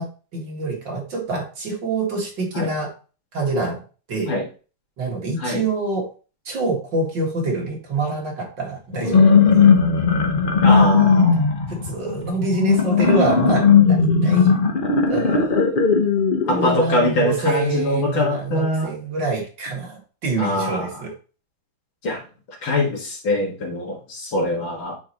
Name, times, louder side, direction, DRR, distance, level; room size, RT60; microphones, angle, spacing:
voice 1, 0.0-2.9 3.3-3.8 4.1-4.3 5.0-6.1 6.5-9.7 11.7-14.5 15.1-15.7 16.1-21.1, right 3 dB, 60° right, -1 dB, 2.7 m, -26 dB
sound 1, 8.9-16.8, left 5 dB, 35° left, 0.8 m, -17 dB
voice 2, 10.6-11.5 13.2-13.3 16.5-18.9 20.4-20.9 22.0-22.2 22.6-25.0, left 1 dB, 70° left, 0 dB, 2.5 m, -23 dB
10.0 x 4.5 x 3.0 m, 0.36 s
omnidirectional pair, 2.2 m